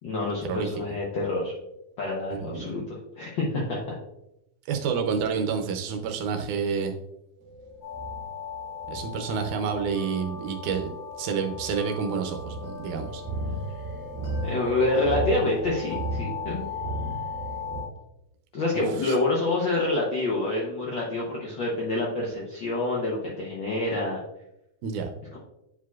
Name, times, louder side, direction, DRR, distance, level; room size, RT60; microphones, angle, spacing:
voice 1, 0.0-1.5 2.0-3.9 14.4-16.6 18.5-24.2 25.3-25.4, left 2 dB, 85° left, -3 dB, 1.0 m, -27 dB
voice 2, 2.3-2.9 4.7-6.9 8.9-10.9 11.2-13.2 18.7-19.1 24.8-25.1, right 6 dB, 90° right, 4 dB, 2.2 m, -29 dB
sound 1, 7.4-17.8, right 1 dB, 60° right, 2.0 m, -35 dB
sound 2, 7.8-17.9, left 7 dB, 30° left, 1.2 m, -39 dB
9.8 x 4.8 x 2.3 m, 0.87 s
omnidirectional pair, 3.4 m